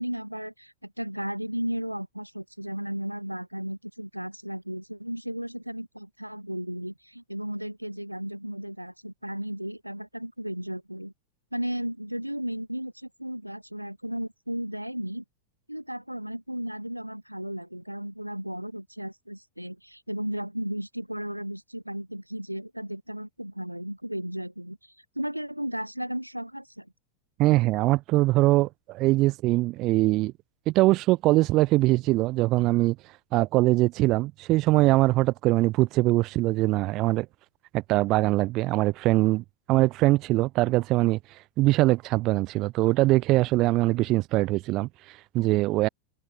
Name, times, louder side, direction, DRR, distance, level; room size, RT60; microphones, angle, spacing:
voice 1, 0.0-11.1 11.5-15.2 15.7-26.9, equal, 90° right, 2.7 m, -34 dB
voice 2, 27.4-30.3 30.7-33.0 33.3-37.3 37.7-45.9, right 19 dB, 40° right, 0.8 m, -22 dB
figure-of-eight pair, 90°, 0 cm